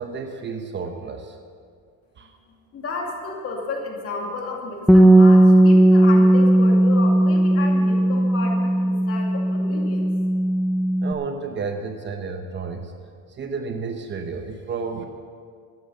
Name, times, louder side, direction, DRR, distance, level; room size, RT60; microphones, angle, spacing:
voice 1, 0.0-1.4 2.2-2.3 11.0-12.9 13.4-15.1, right 5 dB, 30° right, 5 dB, 0.9 m, -31 dB
voice 2, 2.7-10.1, left 3 dB, 40° left, 0 dB, 2.5 m, -32 dB
Bass guitar, 4.9-11.1, right 1 dB, ahead, 0.4 m, -16 dB
13.0 x 10.0 x 7.0 m, 2.1 s
cardioid pair, 155°, 35 cm